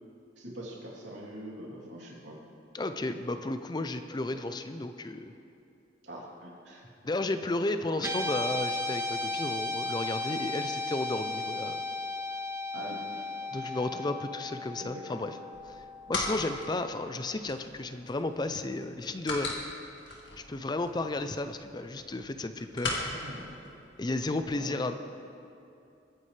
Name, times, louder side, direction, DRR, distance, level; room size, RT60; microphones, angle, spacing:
voice 1, 0.4-2.4 4.3-4.4 6.0-6.8 12.7-13.8 14.8-15.0 20.1-20.2 23.0-23.6 24.5-24.8, right 1 dB, 85° right, -4 dB, 3.1 m, -44 dB
voice 2, 2.7-5.3 7.0-11.8 13.5-15.4 15.7-15.8 16.1-19.6 20.4-23.0 24.0-25.0, left 2 dB, 25° left, 9 dB, 0.5 m, -33 dB
Guitar, 8.0-16.5, left 2 dB, 15° right, 0.7 m, -35 dB
sound 1, 15.5-24.4, left 2 dB, 85° left, 2.2 m, -40 dB
23.0 x 9.8 x 3.3 m, 2.6 s
head